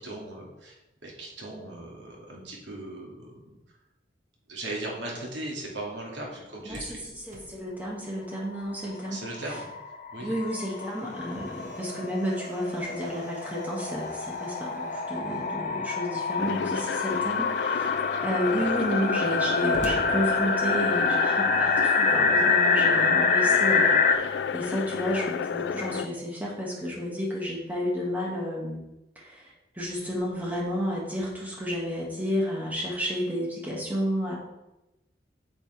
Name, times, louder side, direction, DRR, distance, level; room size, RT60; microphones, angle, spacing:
voice 1, 0.0-3.6 4.5-7.0 9.1-9.7 10.1-10.3, right 1 dB, 85° right, -2 dB, 2.4 m, -38 dB
Slam, 6.3-9.1 9.4-9.5 10.0-15.6 16.5-17.1 17.6-17.7 17.9-21.0, right 1 dB, 40° right, 1.4 m, -47 dB
voice 2, 6.6-9.2 10.2-23.9 24.2-28.8 29.2-34.3, equal, 10° right, -4 dB, 2.1 m, -31 dB
sound 1, 8.5-8.6 8.8-8.9 9.2-24.1, left 4 dB, 45° left, 0.7 m, -26 dB
sound 2, 16.4-26.1, left 6 dB, 70° left, 0.3 m, -32 dB
8.7 x 8.5 x 3.5 m, 0.95 s
head